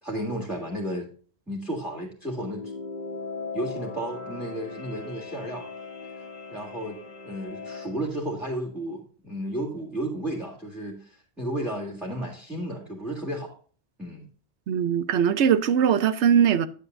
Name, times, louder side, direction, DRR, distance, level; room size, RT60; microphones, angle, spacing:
voice 1, 0.0-1.1 1.5-2.7 3.5-5.7 6.5-13.6 14.0-14.2, right 1 dB, ahead, 1.9 m, -33 dB
sound 1, 2.3-8.0, left 4 dB, 45° left, 1.4 m, -38 dB
voice 2, 14.7-16.7, right 8 dB, 80° right, 1.0 m, -21 dB
9.9 x 8.4 x 2.6 m
omnidirectional pair, 1.2 m